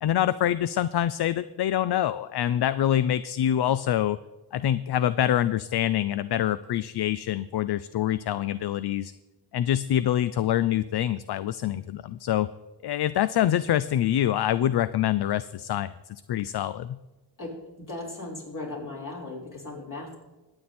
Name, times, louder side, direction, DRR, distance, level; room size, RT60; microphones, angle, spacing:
voice 1, 0.0-4.2 4.5-9.1 9.5-12.5 12.8-17.0, left 11 dB, 60° left, 15 dB, 0.5 m, -25 dB
voice 2, 17.8-20.2, left 2 dB, 45° left, -3 dB, 5.2 m, -37 dB
21.5 x 8.9 x 4.3 m, 1.1 s
wide cardioid pair, 120°, 44 cm